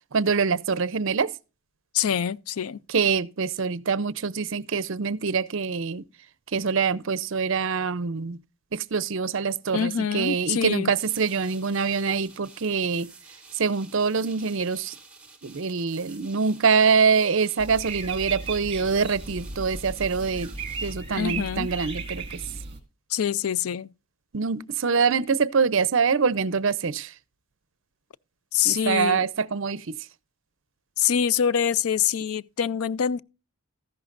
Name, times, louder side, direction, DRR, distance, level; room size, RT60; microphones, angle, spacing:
voice 1, 0.1-1.3 2.9-6.0 6.5-8.4 8.7-13.1 13.5-14.9 15.4-20.5 20.8-22.4 24.3-27.1 28.6-29.9, right 5 dB, 60° right, 0.6 m, -24 dB
voice 2, 1.9-2.8 9.7-10.9 21.2-21.7 23.1-23.9 28.5-29.2 31.0-33.2, left 8 dB, 75° left, 0.4 m, -25 dB
sound 1, 11.0-20.9, right 4 dB, 5° right, 1.8 m, -50 dB
sound 2, 17.6-22.8, right 4 dB, 25° right, 2.2 m, -35 dB
14.0 x 11.0 x 2.5 m
head